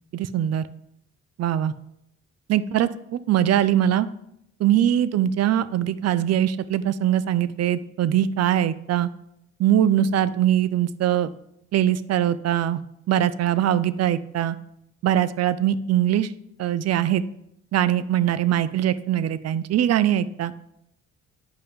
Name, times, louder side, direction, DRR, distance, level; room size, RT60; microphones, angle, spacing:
voice 1, 0.1-0.7 1.4-1.7 2.5-2.9 3.3-4.1 4.6-9.1 9.6-11.3 11.7-12.8 13.1-14.6 15.0-16.3 16.6-17.2 17.7-20.5, right 11 dB, 55° right, 15 dB, 0.5 m, -22 dB
9.0 x 5.5 x 3.6 m, 0.77 s
cardioid pair, 90°, 30 cm